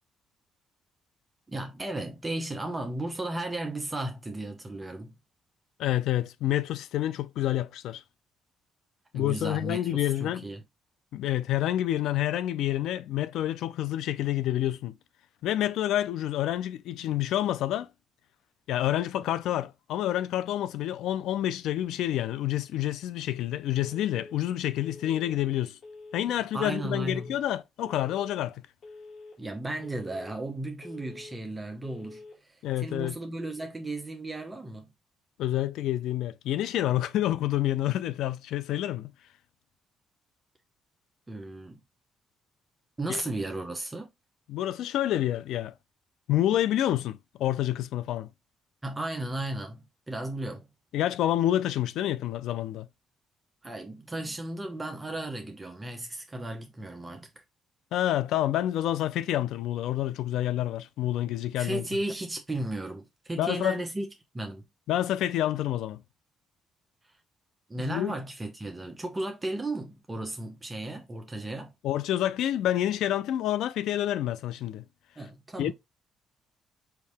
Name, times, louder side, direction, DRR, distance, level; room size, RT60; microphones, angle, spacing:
voice 1, 1.5-5.1 9.1-10.6 26.4-27.4 29.4-34.9 41.3-41.8 43.0-44.1 48.8-50.7 53.6-57.3 61.6-64.1 64.3-64.6 67.7-71.7 75.2-75.7, right 2 dB, 20° right, 0.9 m, -35 dB
voice 2, 5.8-8.0 9.1-10.4 11.1-15.0 15.4-17.9 18.7-25.8 26.1-28.6 32.6-33.2 35.4-39.1 43.1-43.2 44.5-45.7 46.3-48.3 50.9-52.9 57.9-61.8 63.4-63.8 64.9-66.0 67.8-68.2 71.8-74.8 75.6-75.7, left 13 dB, 85° left, 0.4 m, -28 dB
Telephone, 23.8-24.4 24.8-25.4 25.8-26.4 26.8-27.4 27.8-28.4 28.8-29.4 29.8-30.4 30.8-31.4 31.8-32.4, left 3 dB, 55° left, 1.6 m, -47 dB
4.5 x 2.8 x 3.4 m
cardioid pair, 90°, 0 cm